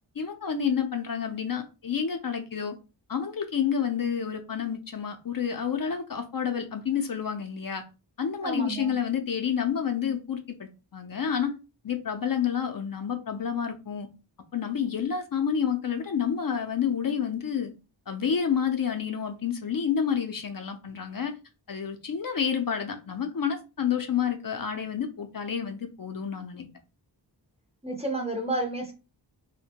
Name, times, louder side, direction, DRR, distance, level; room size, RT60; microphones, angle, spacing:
voice 1, 0.2-2.8 3.1-7.8 8.2-11.5 11.8-14.1 14.5-17.7 18.1-21.3 21.7-26.7, left 7 dB, 50° left, 0.5 m, -29 dB
voice 2, 8.4-9.0 27.8-28.9, right 2 dB, 15° right, 0.6 m, -31 dB
2.5 x 2.1 x 2.8 m
wide cardioid pair, 55°, 45 cm